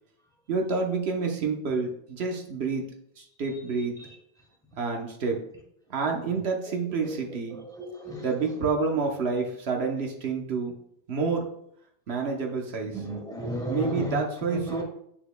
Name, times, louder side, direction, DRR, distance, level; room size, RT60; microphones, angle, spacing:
voice 1, 0.5-2.9 3.2-4.0 4.8-5.4 5.9-7.6 8.2-10.8 11.1-11.5 12.1-13.0 13.7-14.8, right 4 dB, 80° right, 1 dB, 1.2 m, -28 dB
voice 2, 7.8-8.2 12.9-14.2 14.5-14.8, equal, 5° left, -1 dB, 1.6 m, -33 dB
8.0 x 6.0 x 2.2 m, 0.72 s
omnidirectional pair, 1.0 m